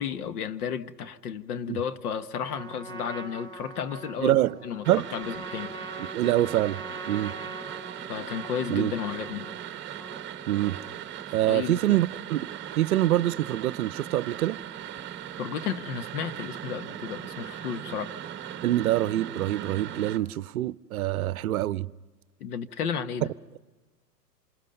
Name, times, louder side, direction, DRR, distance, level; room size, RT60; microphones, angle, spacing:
voice 1, 0.0-5.7 8.1-9.5 11.5-12.0 15.4-18.1 22.4-23.3, left 7 dB, 60° left, 1.6 m, -33 dB
Trumpet, 2.5-11.2, right 2 dB, 10° left, 2.3 m, -42 dB
voice 2, 4.2-4.6 4.9-5.0 6.1-6.8 7.1-7.3 8.7-8.9 10.5-10.8 11.3-12.4 12.8-14.6 18.6-21.9, right 14 dB, 60° right, 0.7 m, -25 dB
sound 1, 4.8-20.2, right 10 dB, 20° right, 1.3 m, -39 dB
28.0 x 28.0 x 5.4 m
hypercardioid pair, 105°, 50 cm